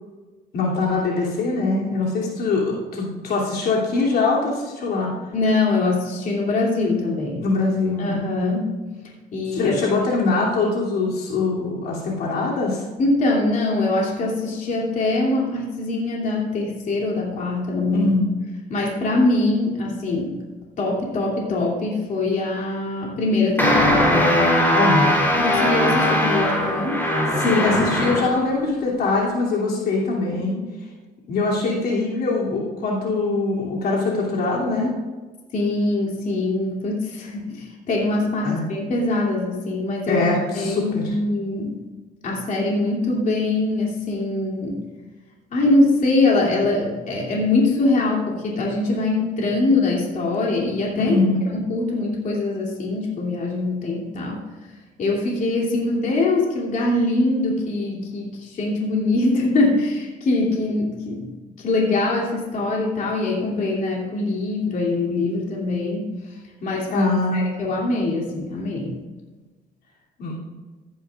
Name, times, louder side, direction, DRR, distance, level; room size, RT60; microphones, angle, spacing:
voice 1, 0.5-5.1 7.4-8.3 9.5-12.8 17.9-18.3 24.7-25.2 27.3-30.6 31.3-34.9 38.4-38.6 40.1-41.1 51.0-51.4 66.9-67.5 70.2-70.3, left 3 dB, 65° left, -4 dB, 2.9 m, -22 dB
voice 2, 5.3-7.5 8.0-8.8 9.3-9.8 13.0-18.1 18.7-20.3 20.8-24.3 25.3-27.0 35.5-40.3 40.5-41.8 42.2-44.8 45.5-51.2 51.5-54.4 55.0-61.3 61.6-68.9, left 2 dB, 50° left, -3 dB, 2.9 m, -23 dB
sound 1, 23.6-28.4, left 1 dB, 10° left, 3.5 m, -19 dB
15.5 x 10.5 x 2.5 m, 1.3 s
cardioid pair, 110°, 17 cm